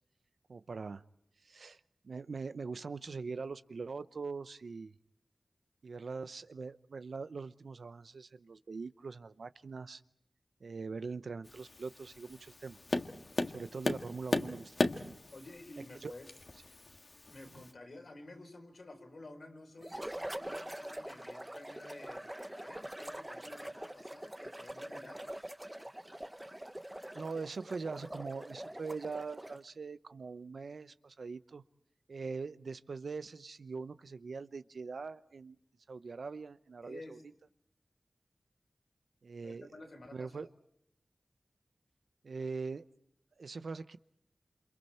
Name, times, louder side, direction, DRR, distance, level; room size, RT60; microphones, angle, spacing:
voice 1, 0.5-1.0 1.4-4.9 5.8-10.0 10.6-12.8 13.5-15.2 16.0-16.1 27.1-31.6 32.1-35.6 35.9-37.2 39.2-39.7 40.1-40.5 42.2-42.9 43.4-44.0, right 4 dB, 85° right, 13 dB, 0.8 m, -42 dB
Tap, 11.5-17.7, left 2 dB, 55° left, 1.7 m, -37 dB
voice 2, 15.3-16.3 17.3-25.5 36.8-37.2 39.4-40.5, left 2 dB, 70° left, 3 dB, 4.4 m, -52 dB
sound 1, 19.8-29.7, right 1 dB, 15° right, 1.0 m, -44 dB
28.5 x 27.0 x 4.4 m, 0.74 s
wide cardioid pair, 60°, 0 cm